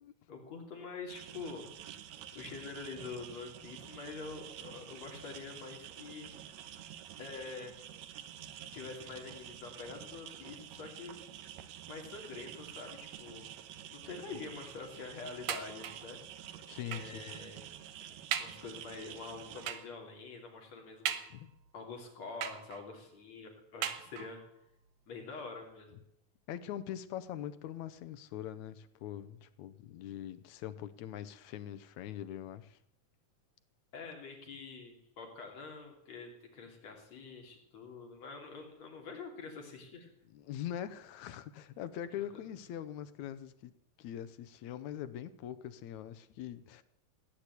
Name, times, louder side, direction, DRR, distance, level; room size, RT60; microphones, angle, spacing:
voice 1, 0.3-1.7 2.3-6.3 7.2-7.7 8.7-11.2 11.9-13.5 13.9-16.2 16.9-17.6 18.0-21.2 21.7-24.4 25.1-26.0 33.9-40.1 42.2-42.4, left 4 dB, 65° left, 1 dB, 4.0 m, -46 dB
sound 1, 1.1-19.7, right 10 dB, 75° right, 2.0 m, -49 dB
sound 2, 15.5-16.2 16.9-17.2 17.8-17.9 18.3-18.7 19.7-20.0 21.1-21.7 22.4-23.0 23.8-24.5 25.3-25.4 25.7-25.8, right 9 dB, 90° right, 2.5 m, -39 dB
voice 2, 16.7-17.2 21.3-21.5 26.5-32.8 40.3-43.7 44.0-46.8, left 11 dB, 80° left, 13 dB, 2.2 m, -42 dB
16.5 x 9.9 x 8.2 m, 0.75 s
omnidirectional pair, 3.3 m